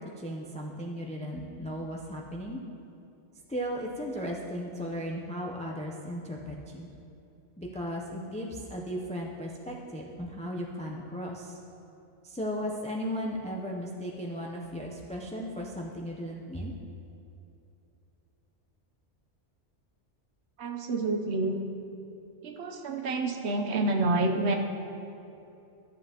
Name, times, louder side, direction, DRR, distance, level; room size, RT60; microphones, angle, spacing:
voice 1, 0.0-2.6 3.5-6.9 7.6-11.6 12.2-16.7, equal, 10° left, -2 dB, 0.3 m, -36 dB
voice 2, 20.6-21.6 22.4-24.6, right 2 dB, 65° right, 4 dB, 1.0 m, -28 dB
13.5 x 7.6 x 2.9 m, 2.8 s
omnidirectional pair, 1.3 m